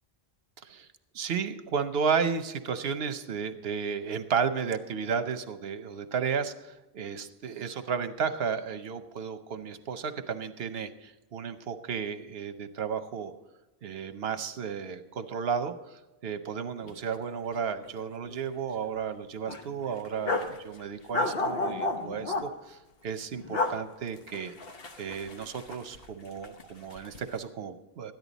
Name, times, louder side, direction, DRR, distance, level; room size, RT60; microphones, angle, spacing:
voice 1, 1.1-13.3 13.8-24.5 25.0-28.1, right 6 dB, 75° right, 10 dB, 1.0 m, -33 dB
sound 1, 16.8-17.0 17.2-17.4 17.8-18.5 18.8-18.9 19.5-20.6 21.1-22.5 23.3-23.7 24.2-26.1 26.4-27.2, left 2 dB, 70° left, 1.2 m, -32 dB
13.5 x 10.5 x 4.0 m, 1.0 s
omnidirectional pair, 1.0 m